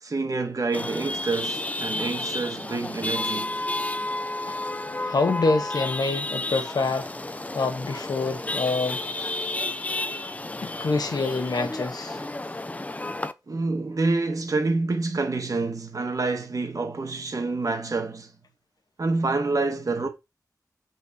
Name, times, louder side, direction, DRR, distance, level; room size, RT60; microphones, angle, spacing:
voice 1, 0.0-3.6 13.5-18.3 19.0-20.1, right 3 dB, 60° right, 1.3 m, -27 dB
Chatter / Vehicle horn car horn honking / Traffic noise roadway noise, 0.7-13.3, left 2 dB, 20° left, 0.5 m, -31 dB
voice 2, 5.0-9.1 10.6-12.2, left 3 dB, 80° left, 1.3 m, -26 dB
6.5 x 4.1 x 4.1 m
wide cardioid pair, 85°, 7 cm